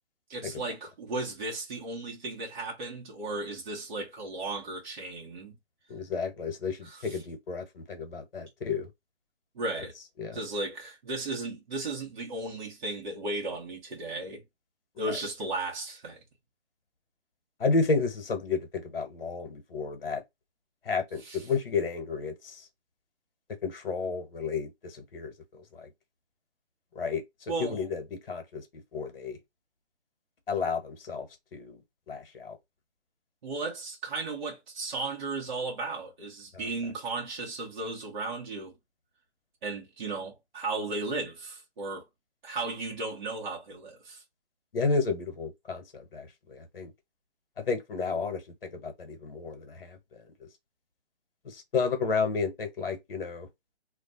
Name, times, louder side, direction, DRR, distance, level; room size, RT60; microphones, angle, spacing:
voice 1, 0.3-5.5 6.8-7.2 9.5-9.9 10.3-14.4 15.0-16.2 21.2-21.5 27.5-27.8 33.4-38.7 39.6-42.1 42.4-44.2, right 2 dB, 45° right, 1.1 m, -35 dB
voice 2, 5.9-8.9 10.2-10.4 17.6-20.2 20.8-22.6 23.6-25.9 26.9-27.2 27.6-28.6 28.9-29.4 30.5-31.3 31.5-31.8 32.1-32.6 44.7-46.9 47.6-50.0 50.4-50.5 51.4-53.5, left 4 dB, 60° left, 1.1 m, -32 dB
2.5 x 2.3 x 3.8 m
hypercardioid pair, 150°, 33 cm